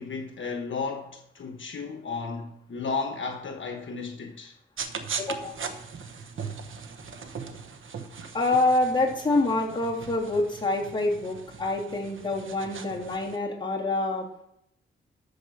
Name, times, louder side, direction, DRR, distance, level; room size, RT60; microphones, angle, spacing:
voice 1, 0.0-4.6, left 4 dB, 70° left, 1.2 m, -34 dB
sound 1, 4.8-13.4, right 5 dB, 75° right, 1.1 m, -39 dB
voice 2, 5.2-5.6 8.3-14.2, left 2 dB, 25° left, 3.1 m, -26 dB
13.5 x 5.0 x 6.4 m
wide cardioid pair, 95°, 21 cm